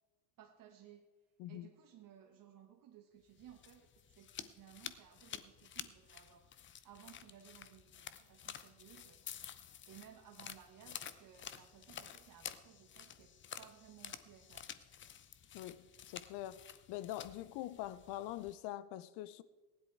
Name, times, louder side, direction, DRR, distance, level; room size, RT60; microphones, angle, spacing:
voice 1, 0.4-1.1 1.5-6.5 6.8-9.2 9.8-14.7, right 10 dB, 40° right, 1.3 m, -59 dB
sound 1, 3.3-18.5, left 9 dB, 25° left, 0.6 m, -51 dB
voice 2, 15.5-16.6 16.9-19.4, left 14 dB, 55° left, 0.8 m, -44 dB
15.5 x 10.5 x 4.6 m
hypercardioid pair, 90°, 50 cm